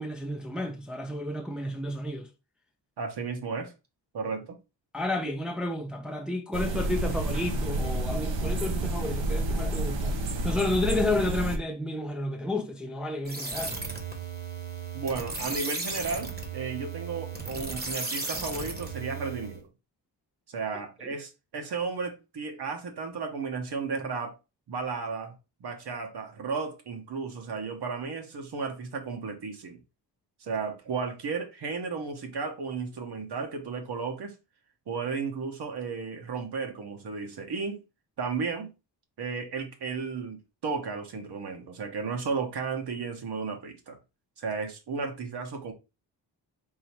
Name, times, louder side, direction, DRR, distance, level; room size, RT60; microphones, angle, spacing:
voice 1, 0.0-2.3 4.9-10.2 10.4-13.7, left 2 dB, ahead, 0.5 m, -31 dB
voice 2, 3.0-3.7 4.1-4.6 14.9-19.7 20.5-24.3 24.7-25.3 25.6-29.8 30.4-34.3 34.9-37.8 38.2-38.7 39.2-44.0 44.4-45.7, right 5 dB, 60° right, 1.1 m, -34 dB
sound 1, 6.5-11.6, right 1 dB, 85° right, 1.1 m, -29 dB
sound 2, 13.2-19.6, right 3 dB, 20° right, 1.1 m, -35 dB
3.8 x 2.7 x 4.4 m
cardioid pair, 105°, 43 cm